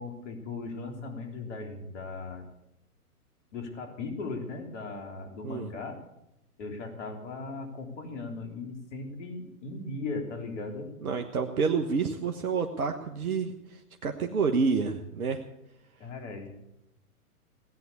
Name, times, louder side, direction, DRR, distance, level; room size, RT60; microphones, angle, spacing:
voice 1, 0.0-2.5 3.5-6.0 6.6-10.9 16.0-16.5, left 3 dB, 50° left, 4 dB, 3.5 m, -38 dB
voice 2, 11.0-15.4, right 5 dB, 70° right, 5 dB, 1.4 m, -29 dB
17.5 x 9.5 x 8.5 m, 0.87 s
figure-of-eight pair, 120°, 45 cm